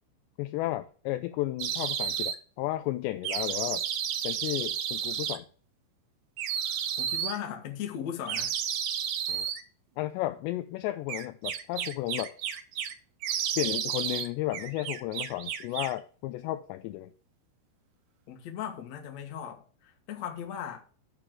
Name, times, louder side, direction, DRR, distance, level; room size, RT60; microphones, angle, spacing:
voice 1, 0.4-3.8 4.2-5.5 9.3-9.5 10.0-12.3 13.6-17.1, left 16 dB, 80° left, 2.6 m, -33 dB
sound 1, 1.6-2.4 3.2-5.4 6.4-7.4 8.3-9.6 11.1-12.9 13.2-14.3 14.5-16.0, right 9 dB, 80° right, 2.2 m, -32 dB
voice 2, 7.0-8.5 18.3-20.8, left 9 dB, 65° left, 1.7 m, -38 dB
8.8 x 4.5 x 7.5 m
omnidirectional pair, 5.4 m